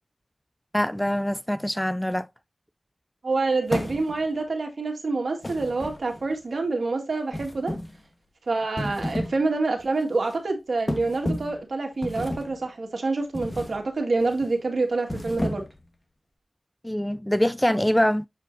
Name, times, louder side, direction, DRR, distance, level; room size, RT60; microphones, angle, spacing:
voice 1, 0.7-2.3 16.8-18.3, equal, 10° left, 0.3 m, -24 dB
voice 2, 3.2-7.7 8.5-15.7, right 3 dB, 80° right, 2.0 m, -27 dB
sound 1, 3.7-4.4 5.4-6.3 7.3-8.0 8.6-9.4 9.8-10.0 10.9-11.6 12.0-12.6 13.3-13.8 14.2-14.5 15.0-15.9, left 1 dB, 35° left, 1.3 m, -32 dB
7.5 x 5.2 x 2.7 m
wide cardioid pair, 50°, 0 cm